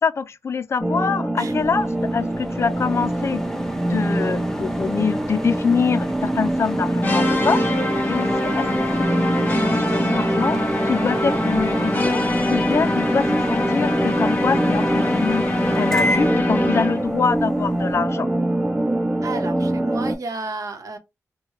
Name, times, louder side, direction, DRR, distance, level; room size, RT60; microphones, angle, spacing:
voice 1, 0.0-3.4 3.9-7.7 8.1-8.7 8.9-10.6 10.8-12.2 12.5-15.4 15.8-18.3, left 5 dB, 50° left, 0.4 m, -25 dB
sound 1, 0.8-20.1, right 1 dB, 25° right, 0.9 m, -24 dB
sound 2, 1.5-17.9, equal, 10° left, 0.6 m, -32 dB
sound 3, 7.0-17.1, left 1 dB, 30° left, 1.1 m, -24 dB
voice 2, 19.2-21.0, right 3 dB, 75° right, 0.8 m, -32 dB
3.7 x 2.2 x 3.1 m
wide cardioid pair, 115°, 6 cm